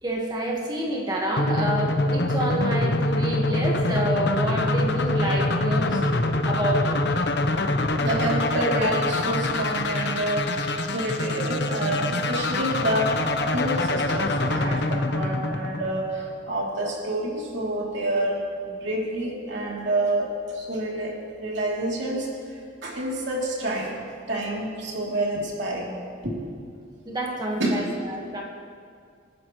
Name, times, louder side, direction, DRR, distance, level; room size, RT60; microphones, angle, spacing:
voice 1, 0.0-6.0 6.4-7.0 27.0-28.4, right 1 dB, 20° right, -1 dB, 1.5 m, -28 dB
sound 1, 1.4-16.3, left 2 dB, 60° left, 0.9 m, -25 dB
voice 2, 8.0-13.1 13.5-23.9 24.3-25.9 26.2-26.5 27.6-27.8, right 1 dB, 65° right, -3 dB, 3.1 m, -28 dB
27.5 x 11.0 x 3.2 m, 2.2 s
head